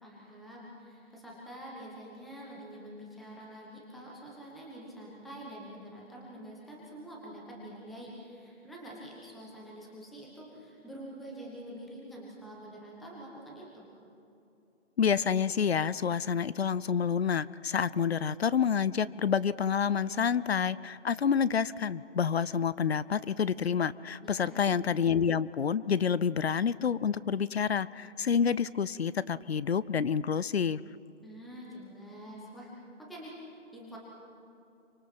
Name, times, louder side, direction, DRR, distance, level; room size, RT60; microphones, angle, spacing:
voice 1, 0.0-13.9 24.2-24.6 31.2-32.7 33.1-34.0, right 1 dB, ahead, -4 dB, 0.4 m, -46 dB
voice 2, 15.0-30.8, left 7 dB, 55° left, 19 dB, 0.6 m, -28 dB
28.0 x 24.5 x 6.0 m, 2.7 s
hypercardioid pair, 160°, 37 cm